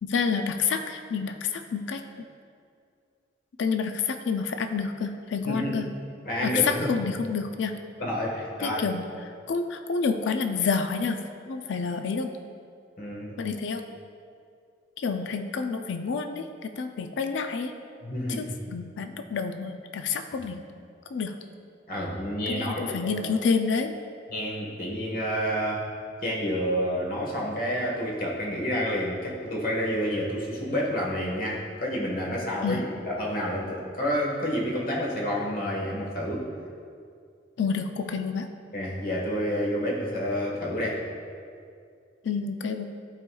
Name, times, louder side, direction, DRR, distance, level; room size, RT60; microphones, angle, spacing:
voice 1, 0.0-2.0 3.6-5.9 6.4-7.8 8.6-9.0 9.5-11.2 11.5-12.3 13.4-13.8 15.0-17.7 18.3-20.6 21.1-21.3 22.5-23.9 32.6-32.8 37.6-38.5 42.2-42.9, left 5 dB, 80° left, 7 dB, 0.4 m, -28 dB
voice 2, 6.2-6.9 8.0-8.8 13.0-13.3 18.0-18.5 21.9-23.3 24.3-25.9 26.2-36.5 38.7-41.0, equal, 50° left, -3 dB, 1.3 m, -29 dB
13.5 x 4.7 x 2.3 m, 2.3 s
head